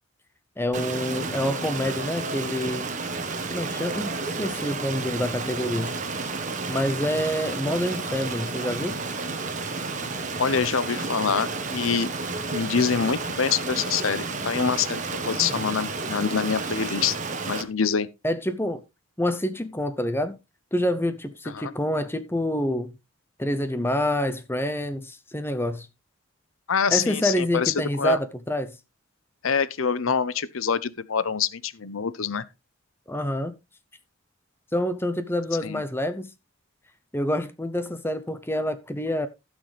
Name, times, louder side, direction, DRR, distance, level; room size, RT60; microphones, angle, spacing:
voice 1, 0.6-2.9 3.5-6.0 6.7-9.0 15.3-15.7 18.2-18.8 19.2-20.4 20.7-22.9 23.4-25.9 26.9-28.8 33.1-33.5 34.7-36.3 37.1-39.3, left 1 dB, 10° left, 0.7 m, -27 dB
Stream, 0.7-17.6, right 3 dB, 35° right, 1.4 m, -31 dB
voice 2, 10.4-12.1 12.5-17.2 17.4-18.1 21.5-21.7 26.7-28.2 29.4-32.4 35.6-35.8, left 6 dB, 75° left, 0.7 m, -25 dB
15.5 x 6.3 x 3.3 m
head